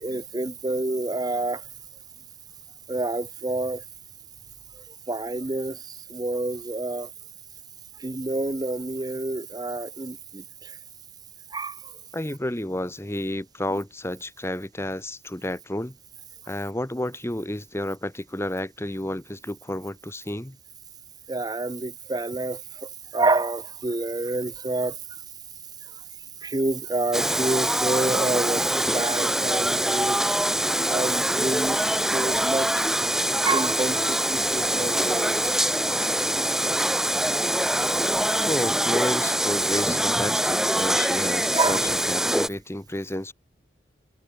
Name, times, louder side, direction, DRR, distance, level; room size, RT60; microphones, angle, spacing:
voice 1, 0.0-1.6 2.9-3.8 5.1-5.8 6.1-7.1 8.0-10.4 11.5-11.7 21.3-22.6 23.1-24.9 26.4-28.6 28.9-30.2 30.7-31.8 32.1-32.7 33.4-34.0 34.3-35.4 38.0-38.3 41.5-41.8, right 2 dB, 25° right, 0.9 m, -27 dB
voice 2, 12.1-16.0 16.5-20.6 38.4-43.3, left 1 dB, 15° left, 1.3 m, -31 dB
sound 1, 27.1-42.5, right 1 dB, 5° right, 1.1 m, -24 dB
head